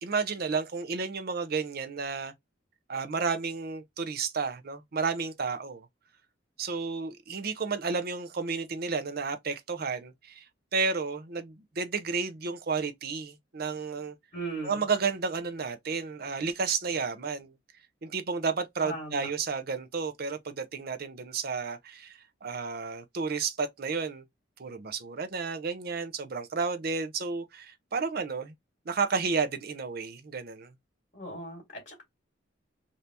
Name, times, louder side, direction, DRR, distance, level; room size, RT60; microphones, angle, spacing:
voice 1, 0.0-2.3 2.9-5.9 6.6-10.5 10.7-14.1 14.6-17.5 18.0-24.2 24.6-28.5 28.9-30.7, right 5 dB, 55° right, 0.6 m, -32 dB
voice 2, 14.3-14.8 18.8-19.3 31.1-32.0, right 2 dB, 45° left, 1.9 m, -38 dB
3.3 x 2.7 x 2.7 m
head